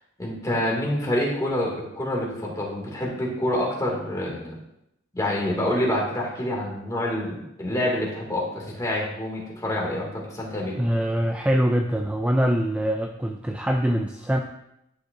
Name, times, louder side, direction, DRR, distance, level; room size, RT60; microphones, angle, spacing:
voice 1, 0.2-4.5 5.1-10.8, left 1 dB, 20° left, -3 dB, 2.2 m, -27 dB
voice 2, 10.8-14.4, equal, 5° right, 3 dB, 0.4 m, -23 dB
11.5 x 6.6 x 2.6 m, 0.82 s
head